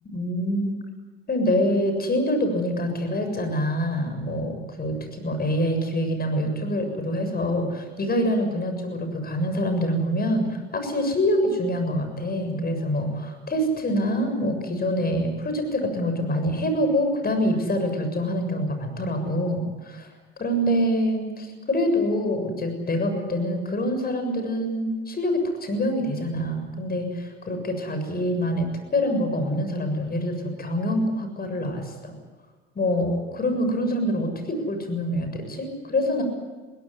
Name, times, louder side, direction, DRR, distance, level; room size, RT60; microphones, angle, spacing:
voice 1, 0.1-0.8 1.3-20.1 20.4-32.1 32.8-36.2, equal, 30° left, 7 dB, 7.0 m, -25 dB
21.5 x 18.0 x 9.9 m, 1.3 s
supercardioid pair, 80°, 30 cm